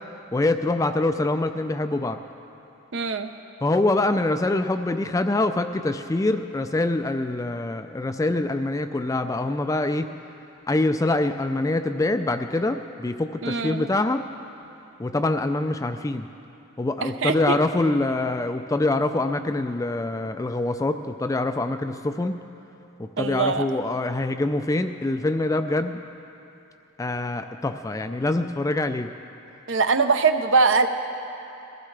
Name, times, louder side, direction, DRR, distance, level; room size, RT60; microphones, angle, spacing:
voice 1, 0.3-2.2 3.6-10.1 10.7-14.2 15.0-16.3 16.8-22.4 23.0-26.0 27.0-29.1, left 2 dB, 15° left, 8 dB, 0.3 m, -25 dB
voice 2, 2.9-3.3 13.4-13.9 17.0-17.6 23.2-23.7 29.7-30.9, right 4 dB, 60° right, 7 dB, 0.7 m, -22 dB
22.0 x 15.0 x 3.3 m, 2.9 s
head